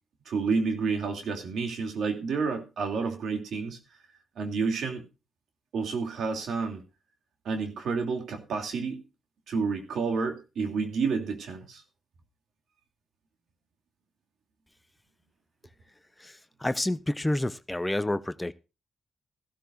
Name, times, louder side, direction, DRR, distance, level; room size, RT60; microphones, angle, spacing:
voice 1, 0.3-3.8 4.4-5.0 5.7-6.8 7.4-9.0 9.5-11.8, right 4 dB, 75° right, 5 dB, 2.8 m, -30 dB
voice 2, 16.2-18.5, left 1 dB, 15° left, 15 dB, 0.7 m, -29 dB
15.0 x 13.0 x 2.6 m, 0.30 s
cardioid pair, 70°, 0 cm